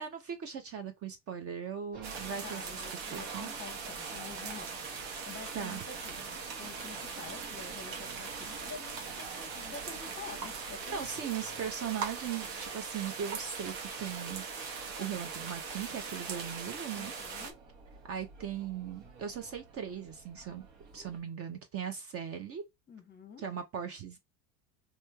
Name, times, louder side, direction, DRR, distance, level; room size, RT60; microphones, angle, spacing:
voice 1, 0.0-2.6 3.1-3.6 5.5-5.8 10.9-17.1 18.1-20.7 20.9-22.6 23.4-24.2, right 8 dB, 35° right, 0.6 m, -39 dB
sound 1, 1.9-21.2, right 5 dB, 85° right, 1.3 m, -52 dB
sound 2, 2.0-17.5, right 5 dB, 70° right, 1.1 m, -40 dB
voice 2, 2.4-6.2 6.6-11.0 17.0-17.6 22.9-23.4, left 5 dB, 25° left, 0.8 m, -48 dB
3.1 x 2.8 x 2.2 m
supercardioid pair, 120°, 42 cm